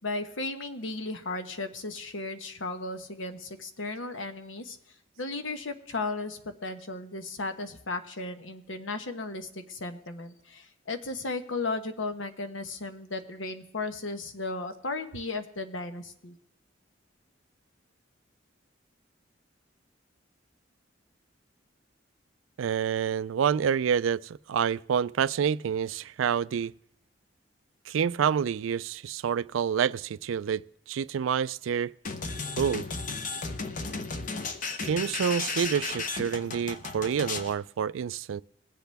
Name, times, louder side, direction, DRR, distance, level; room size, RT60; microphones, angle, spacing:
voice 1, 0.0-4.8 5.2-16.3, left 3 dB, 85° left, 1.2 m, -35 dB
voice 2, 22.6-26.7 27.9-30.6 30.9-31.9 32.6-32.9 34.8-38.4, right 7 dB, 90° right, 0.4 m, -28 dB
sound 1, 32.0-37.5, left 4 dB, 40° left, 0.9 m, -34 dB
21.5 x 8.0 x 3.4 m
head